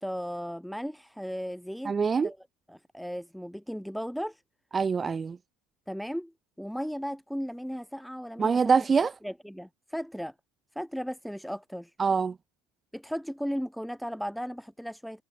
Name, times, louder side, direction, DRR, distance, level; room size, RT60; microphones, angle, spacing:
voice 1, 0.0-2.0 2.2-4.4 5.9-8.6 9.2-10.3 10.7-11.9 12.9-15.2, equal, ahead, 1.7 m, -36 dB
voice 2, 1.9-2.3 4.7-5.4 8.4-9.1 12.0-12.3, right 5 dB, 25° right, 0.6 m, -24 dB
supercardioid pair, 105°, 0 cm